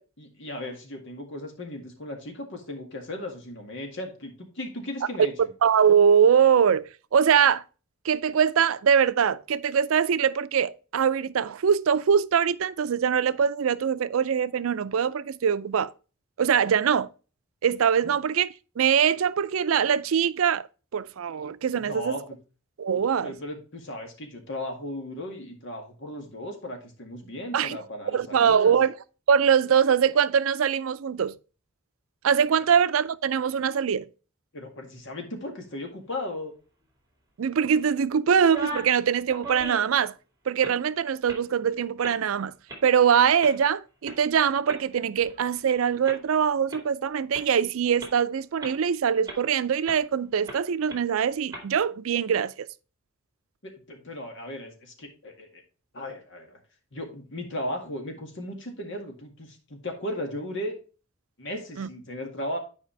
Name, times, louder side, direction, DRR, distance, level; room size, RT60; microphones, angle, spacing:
voice 1, 0.2-5.5 18.0-18.1 21.8-22.2 23.2-28.7 34.5-36.5 53.6-55.6 55.9-56.6 56.9-60.8 61.4-62.6, left 1 dB, 65° left, 2.0 m, -36 dB
voice 2, 5.6-7.6 8.0-15.9 16.4-17.1 17.6-18.5 18.8-20.7 20.9-22.2 22.8-23.3 27.5-27.8 28.1-28.9 29.3-31.4 32.2-34.1 37.4-40.1 40.5-42.5 42.8-52.7 61.8-61.9, right 7 dB, 90° right, 0.4 m, -23 dB
sound 1, 38.3-39.0 39.3-40.0 40.5-40.8 41.3-41.4 42.0-42.3 42.7-42.8 43.4-43.5 44.0-44.1 44.7-45.7 46.0-46.2 46.7-46.8 47.3-47.4 48.0-48.1 48.6-48.9 49.2-49.4 49.9-50.0 50.5-50.6 50.9-51.0 51.5-51.6, right 2 dB, 20° right, 2.3 m, -37 dB
10.0 x 4.9 x 3.2 m
head